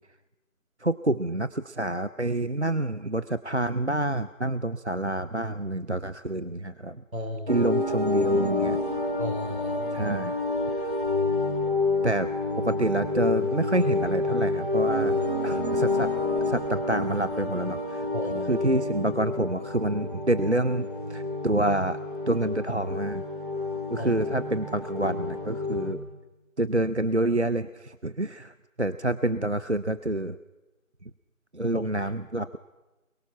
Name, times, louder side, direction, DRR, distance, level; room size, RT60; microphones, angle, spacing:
voice 1, 0.8-7.0 7.5-8.8 9.9-10.3 12.0-12.3 12.6-16.1 16.4-18.1 18.5-22.0 22.3-23.2 23.9-26.0 26.6-30.4 31.5-32.6, right 1 dB, 55° right, 14 dB, 0.6 m, -27 dB
voice 2, 7.1-7.6 9.2-10.1 18.1-18.7 24.0-24.1 31.7-31.8, left 1 dB, 80° right, 3 dB, 4.9 m, -35 dB
sound 1, 7.5-25.9, left 3 dB, 35° right, 3.0 m, -28 dB
23.0 x 22.5 x 5.9 m, 1.1 s
figure-of-eight pair, 180°, 41 cm